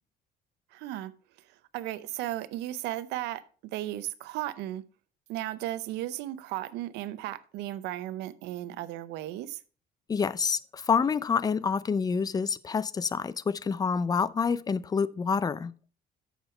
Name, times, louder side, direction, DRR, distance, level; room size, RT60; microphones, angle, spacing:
voice 1, 0.7-1.1 1.4-4.8 5.3-9.6, right 14 dB, 90° right, 0.6 m, -35 dB
voice 2, 10.1-15.7, left 5 dB, 20° left, 0.4 m, -27 dB
7.6 x 6.7 x 4.4 m
cardioid pair, 110°, 17 cm